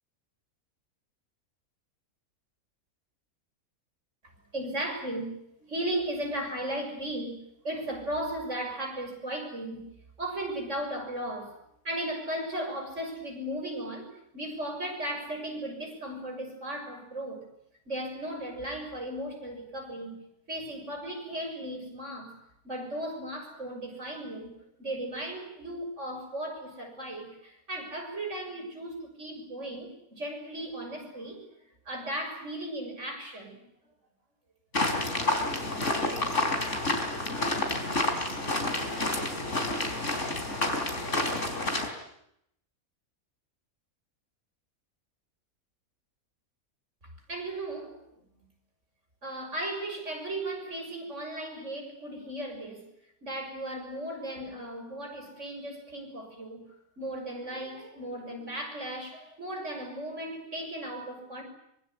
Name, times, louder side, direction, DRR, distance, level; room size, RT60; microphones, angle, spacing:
voice 1, 4.5-5.3 5.6-7.4 7.6-9.8 10.2-11.6 11.8-17.4 17.9-20.2 20.5-22.3 22.6-31.4 31.9-33.6 47.3-48.1 48.4-48.5 49.2-52.9 53.2-56.6 57.0-61.4, right 1 dB, 55° right, 3 dB, 6.9 m, -36 dB
sound 1, 34.7-41.9, left 2 dB, 55° left, 4.4 m, -29 dB
24.5 x 23.5 x 9.6 m, 0.74 s
omnidirectional pair, 1.5 m